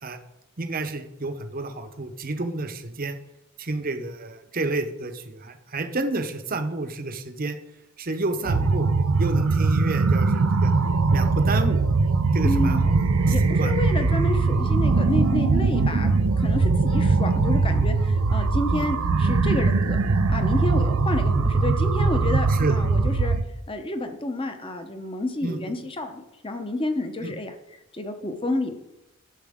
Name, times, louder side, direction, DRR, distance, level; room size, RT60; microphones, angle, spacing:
voice 1, 0.6-3.2 3.6-7.6 8.0-8.9 9.2-10.7 11.1-11.8 12.3-12.9 13.3-13.7 15.9-16.2 18.7-18.9 22.5-22.7 25.4-25.6 27.2-27.3, right 2 dB, 40° right, 6 dB, 0.8 m, -30 dB
sound 1, 8.4-23.4, right 3 dB, 80° right, 0.6 m, -21 dB
voice 2, 12.4-12.8 13.3-20.0 20.3-23.4 23.7-27.5 27.9-28.7, left 2 dB, 25° left, 7 dB, 0.9 m, -29 dB
12.0 x 7.1 x 3.7 m, 0.93 s
head